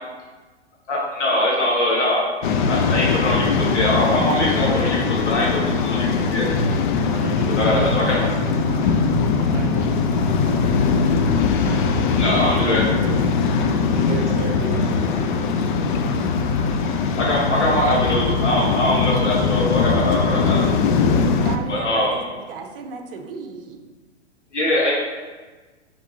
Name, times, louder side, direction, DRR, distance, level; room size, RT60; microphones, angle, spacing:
voice 1, 0.9-2.2 2.7-6.5 7.5-8.2 12.1-12.8 16.8-20.8 21.7-22.2 24.5-24.9, left 1 dB, 85° left, -5 dB, 1.3 m, -22 dB
Waves surf, 2.4-21.6, left 5 dB, 45° left, 0.4 m, -21 dB
sound 1, 6.5-8.3, right 3 dB, 20° left, 0.8 m, -31 dB
voice 2, 7.1-11.1 11.6-13.2 13.9-15.9, right 4 dB, 20° right, -2 dB, 0.3 m, -35 dB
voice 3, 21.4-23.8, right 5 dB, 50° right, 4 dB, 0.7 m, -35 dB
5.8 x 3.4 x 2.7 m, 1.3 s
hypercardioid pair, 115°, 35 cm